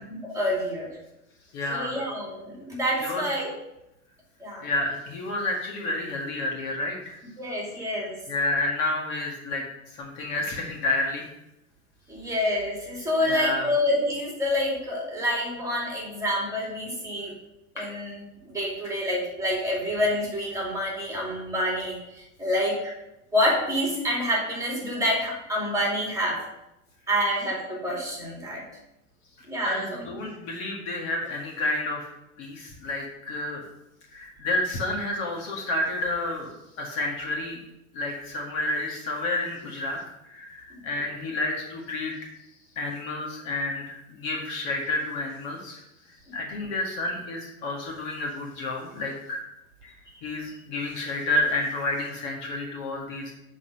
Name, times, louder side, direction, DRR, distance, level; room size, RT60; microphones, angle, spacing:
voice 1, 0.1-0.9 1.7-3.5 4.4-4.6 7.4-8.2 12.1-17.3 17.7-22.9 23.3-26.4 27.1-28.6 29.4-30.2 40.7-41.1 50.5-50.6, left 1 dB, 5° right, -4 dB, 2.4 m, -27 dB
voice 2, 1.5-2.0 3.0-3.2 4.6-7.2 8.3-9.6 9.9-11.3 13.2-13.7 17.8-17.9 29.6-32.1 32.4-33.6 34.1-36.5 36.8-37.6 37.9-40.0 40.2-42.1 42.7-45.8 46.3-49.4 49.8-49.9 50.2-53.3, left 2 dB, 45° left, 0 dB, 1.8 m, -30 dB
7.4 x 4.2 x 6.4 m, 0.88 s
supercardioid pair, 145°, 44 cm